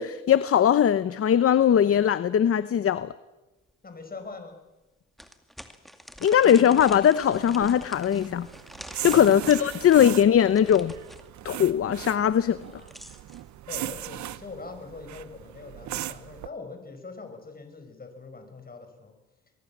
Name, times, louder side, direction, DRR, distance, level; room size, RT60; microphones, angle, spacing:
voice 1, 0.0-3.1 6.2-8.5 9.0-10.9 11.4-12.6, left 9 dB, 50° left, 0.9 m, -20 dB
sound 1, 3.7-3.8 4.2-4.3 5.2-11.3 12.5-13.4, equal, ahead, 2.2 m, -46 dB
voice 2, 3.8-4.6 9.2-10.0 12.7-12.9 13.7-19.1, left 3 dB, 30° left, 5.7 m, -43 dB
sound 2, 7.3-16.5, right 13 dB, 70° right, 0.9 m, -39 dB
23.5 x 22.5 x 7.4 m
cardioid pair, 90°, 30 cm